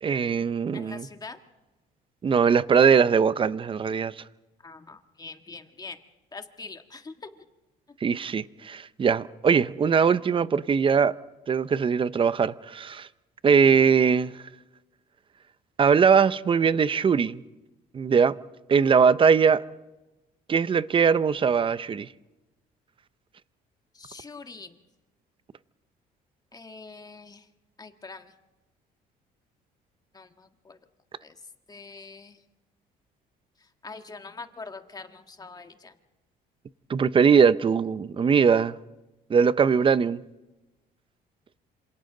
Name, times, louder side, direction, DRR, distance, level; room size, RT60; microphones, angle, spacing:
voice 1, 0.0-1.0 2.2-4.1 8.0-11.2 11.5-13.1 13.4-14.3 15.8-17.4 17.9-18.4 18.7-19.6 20.5-22.1 36.9-38.7 39.3-40.2, right 6 dB, 30° right, 0.7 m, -21 dB
voice 2, 0.7-1.4 4.6-6.0 6.3-7.4 23.9-24.8 26.5-27.5 27.8-28.3 30.1-30.8 31.2-31.4 31.7-32.4 33.6-36.0, left 4 dB, 20° left, 1.6 m, -43 dB
27.0 x 27.0 x 3.9 m
cardioid pair, 110°, 17 cm